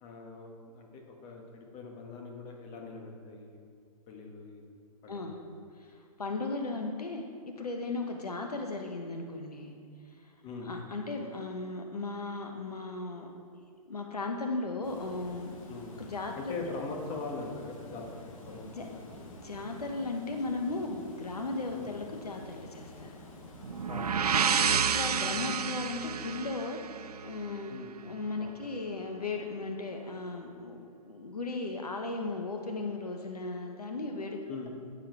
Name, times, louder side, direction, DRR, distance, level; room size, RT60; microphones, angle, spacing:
voice 1, 0.0-3.6 4.1-4.6 5.0-5.4 10.4-10.7 15.7-16.0 16.3-19.4 21.7-21.9 23.9-24.4 27.4-28.0 28.4-28.8 34.5-34.7, left 3 dB, 35° left, 1 dB, 1.7 m, -42 dB
voice 2, 5.1-5.4 5.8-9.7 10.2-10.3 10.6-13.3 13.5-13.6 13.9-15.6 16.0-16.4 18.8-18.9 19.2-23.2 24.7-27.8 28.0-34.4, left 3 dB, 90° left, 3 dB, 1.0 m, -36 dB
Water, 14.8-25.5, left 2 dB, 60° left, 1.7 m, -49 dB
sound 1, 23.6-27.5, right 7 dB, 85° right, 0.5 m, -29 dB
10.5 x 7.5 x 4.6 m, 2.2 s
figure-of-eight pair, 120°, 19 cm